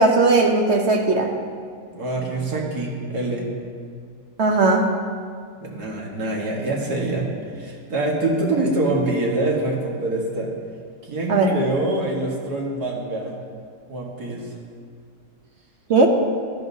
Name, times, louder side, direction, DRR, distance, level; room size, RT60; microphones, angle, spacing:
voice 1, 0.0-1.3 4.4-4.9 11.3-11.5 15.9-16.1, right 3 dB, 50° right, 2 dB, 1.0 m, -17 dB
voice 2, 1.9-3.5 5.6-7.3 7.6-10.5 11.0-13.4 13.9-14.5, right 2 dB, 70° right, -2 dB, 2.1 m, -25 dB
14.5 x 12.0 x 2.8 m, 2.1 s
omnidirectional pair, 1.7 m